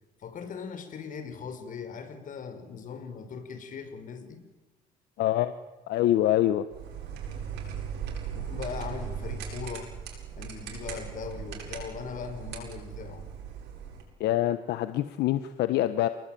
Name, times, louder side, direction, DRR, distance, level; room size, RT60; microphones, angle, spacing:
voice 1, 0.2-4.4 8.3-9.9 10.3-13.3, left 6 dB, 50° left, 8 dB, 5.6 m, -39 dB
voice 2, 5.2-5.5 5.9-6.6 14.2-16.1, left 13 dB, 80° left, 11 dB, 1.3 m, -25 dB
sound 1, 6.7-14.0, right 7 dB, 85° right, 7.9 m, -38 dB
29.5 x 20.5 x 9.4 m, 1.2 s
cardioid pair, 110°, 17 cm